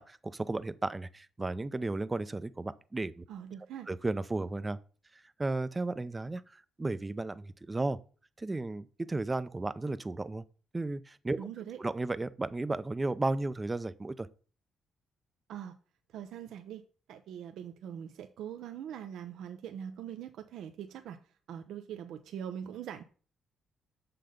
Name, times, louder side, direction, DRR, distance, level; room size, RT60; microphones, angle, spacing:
voice 1, 0.0-3.2 3.9-4.8 5.4-8.0 8.4-10.4 10.7-11.4 11.8-14.3, right 2 dB, 20° right, 0.6 m, -34 dB
voice 2, 3.3-3.9 11.4-11.8 15.5-15.8 16.1-16.8 17.1-21.2 21.5-23.0, right 9 dB, 80° right, 0.7 m, -42 dB
6.6 x 5.9 x 5.1 m
cardioid pair, 90°, 0 cm